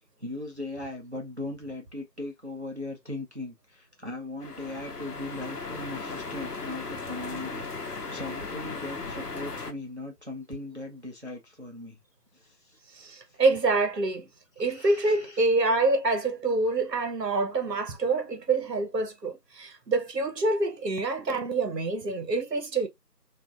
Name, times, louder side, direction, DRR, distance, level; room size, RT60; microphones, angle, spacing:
voice 1, 0.2-12.0 12.3-13.4 14.6-15.4, left 2 dB, 45° right, 0.6 m, -39 dB
sound 1, 4.4-9.7, left 3 dB, 70° left, 0.8 m, -37 dB
voice 2, 12.9-14.3 14.6-22.9, right 3 dB, 85° right, 0.9 m, -26 dB
3.3 x 2.5 x 2.4 m
figure-of-eight pair, 170°, 48 cm